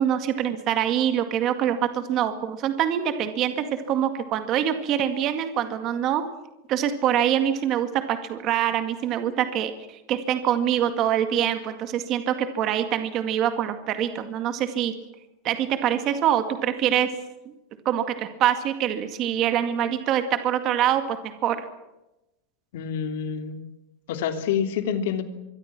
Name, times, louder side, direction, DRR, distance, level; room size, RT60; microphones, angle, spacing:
voice 1, 0.0-6.2 6.7-9.7 10.1-14.9 15.4-17.1 17.5-17.6 17.9-21.7, right 10 dB, 30° right, 8 dB, 2.0 m, -24 dB
voice 2, 22.7-23.6 24.1-25.2, left 8 dB, 60° left, 7 dB, 3.1 m, -27 dB
25.5 x 23.5 x 6.1 m, 0.95 s
supercardioid pair, 180°, 0 cm